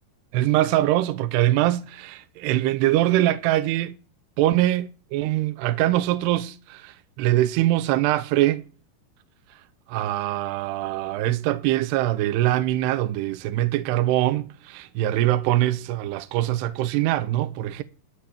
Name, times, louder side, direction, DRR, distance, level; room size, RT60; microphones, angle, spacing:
voice 1, 0.3-4.0 4.4-8.6 9.9-17.8, right 14 dB, 80° right, 2.6 m, -23 dB
13.0 x 4.7 x 8.3 m
omnidirectional pair, 5.0 m